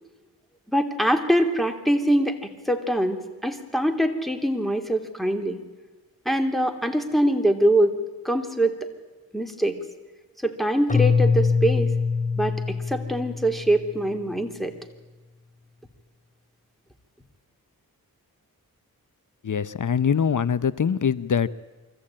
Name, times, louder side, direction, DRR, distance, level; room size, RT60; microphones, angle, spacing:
voice 1, 0.7-5.6 6.2-7.9 8.2-8.9 9.3-9.8 10.4-11.9 12.4-14.7, right 1 dB, ahead, 4 dB, 2.7 m, -23 dB
Keyboard (musical), 10.9-14.0, left 5 dB, 20° left, 1.6 m, -23 dB
voice 2, 19.4-21.5, left 7 dB, 55° left, 16 dB, 0.8 m, -23 dB
23.5 x 14.5 x 8.8 m, 1.2 s
cardioid pair, 45°, 37 cm